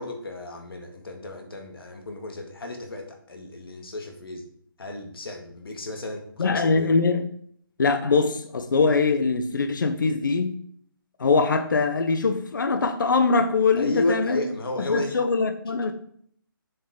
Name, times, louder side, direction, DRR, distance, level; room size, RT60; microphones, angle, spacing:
voice 1, 0.0-4.5 4.8-6.9 13.8-15.2, left 2 dB, 80° left, 1.8 m, -33 dB
voice 2, 6.4-7.3 7.8-10.6 11.2-14.4 14.8-15.9, left 4 dB, 60° left, 0.7 m, -22 dB
7.0 x 5.5 x 3.6 m
hypercardioid pair, 175°, 12 cm